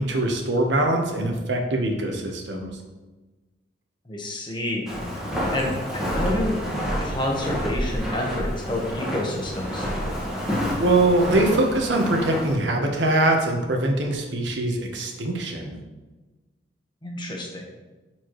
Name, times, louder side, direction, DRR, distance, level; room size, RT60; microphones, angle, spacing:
voice 1, 0.0-2.7 10.8-15.8, right 2 dB, 75° right, 2 dB, 1.1 m, -23 dB
voice 2, 4.1-4.9 5.5-6.5 7.0-9.9 17.0-17.6, left 1 dB, 25° left, -1 dB, 1.3 m, -29 dB
Walk footsteps, 4.9-12.5, equal, 5° right, 1.7 m, -28 dB
11.0 x 4.5 x 3.1 m, 1.2 s
head